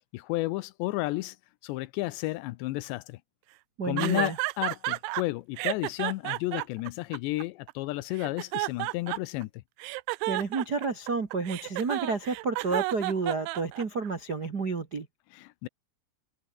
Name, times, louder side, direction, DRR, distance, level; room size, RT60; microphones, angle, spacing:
voice 1, 0.1-1.4 1.6-3.2 3.8-9.5 15.3-15.7, left 19 dB, 85° left, 2.8 m, -32 dB
voice 2, 3.8-4.4 10.2-15.1, right 4 dB, 55° right, 1.0 m, -30 dB
sound 1, 4.0-5.2 5.6-7.7 8.2-9.4 9.8-14.1, right 23 dB, 85° right, 3.0 m, -32 dB
omnidirectional pair, 5.3 m